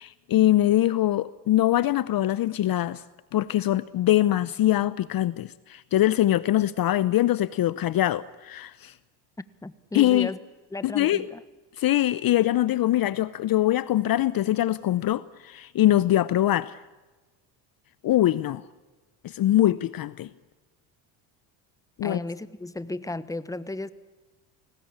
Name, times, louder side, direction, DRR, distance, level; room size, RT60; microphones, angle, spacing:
voice 1, 0.0-3.0 3.3-8.9 9.9-10.3 10.8-11.3 11.8-16.8 18.0-18.6 19.2-20.3 22.0-22.2, left 14 dB, 45° left, 0.8 m, -23 dB
voice 2, 9.6-10.4 10.7-11.4 22.0-23.9, left 2 dB, 5° left, 1.2 m, -34 dB
29.0 x 19.5 x 8.8 m
supercardioid pair, 85°, 49 cm